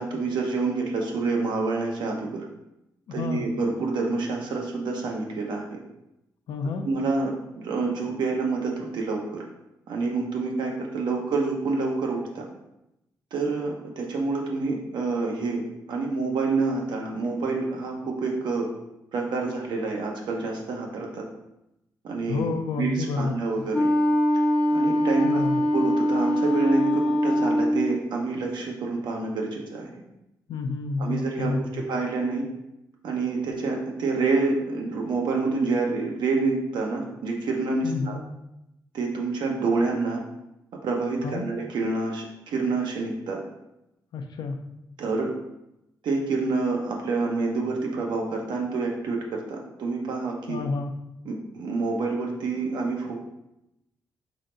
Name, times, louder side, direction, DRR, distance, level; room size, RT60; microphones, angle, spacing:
voice 1, 0.0-2.4 3.1-5.8 6.8-9.4 9.9-12.5 13.3-15.6 15.9-18.7 19.1-21.2 22.0-23.9 24.7-30.0 31.0-32.4 33.0-38.2 38.9-40.2 40.8-43.4 45.0-45.3 46.0-50.6 51.2-53.2, right 3 dB, 90° right, 0 dB, 0.9 m, -27 dB
voice 2, 3.1-3.4 6.5-6.9 22.3-23.3 25.2-25.6 30.5-31.8 37.8-38.2 41.2-41.4 44.1-44.6 50.5-50.9, left 4 dB, 80° left, 6 dB, 0.5 m, -29 dB
Wind instrument woodwind instrument, 23.7-28.0, equal, 10° left, 0.5 m, -22 dB
4.0 x 3.3 x 3.9 m, 0.88 s
cardioid pair, 110°, 7 cm